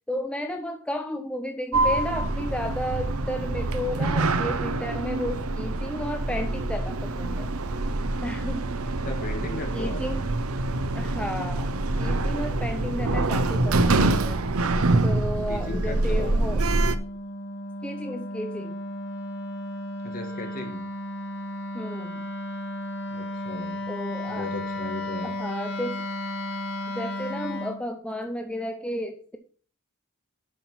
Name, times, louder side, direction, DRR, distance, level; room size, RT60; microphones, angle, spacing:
voice 1, 0.1-7.5 8.2-8.7 9.7-10.2 10.9-14.4 15.0-16.6 17.8-18.8 21.7-22.3 23.9-24.5 25.2-26.1 26.9-29.4, left 1 dB, 5° left, 4 dB, 0.7 m, -33 dB
Sliding door, 1.7-17.0, right 2 dB, 85° right, 0.8 m, -25 dB
voice 2, 9.0-10.0 15.5-16.4 20.0-20.8 23.1-23.8 24.3-25.3, left 2 dB, 40° left, 2 dB, 2.2 m, -36 dB
Wind instrument woodwind instrument, 14.9-27.8, left 1 dB, 55° left, 1.8 m, -34 dB
8.5 x 6.0 x 5.7 m, 0.42 s
head